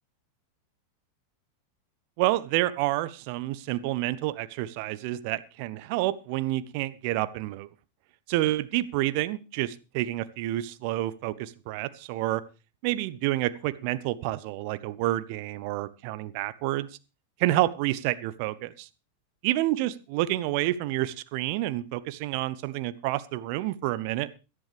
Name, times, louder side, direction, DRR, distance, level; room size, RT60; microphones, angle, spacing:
voice 1, 2.2-7.7 8.3-12.4 12.8-16.9 17.4-18.9 19.4-24.3, right 16 dB, 45° right, 15 dB, 0.8 m, -29 dB
17.5 x 12.5 x 3.4 m, 0.31 s
figure-of-eight pair, 90°, 0 cm